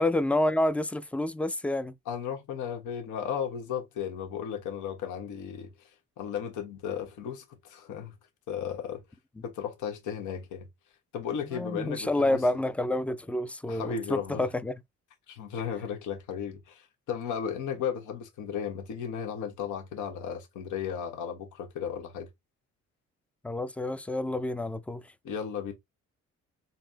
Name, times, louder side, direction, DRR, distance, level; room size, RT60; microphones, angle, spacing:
voice 1, 0.0-1.9 11.5-14.7 23.4-25.0, left 1 dB, 5° left, 0.3 m, -28 dB
voice 2, 2.1-5.9 6.2-8.1 8.5-9.0 9.4-10.7 11.1-12.4 13.7-14.5 15.3-22.3 25.2-25.7, left 8 dB, 80° left, 1.2 m, -35 dB
4.1 x 2.0 x 3.8 m
cardioid pair, 90°, 30 cm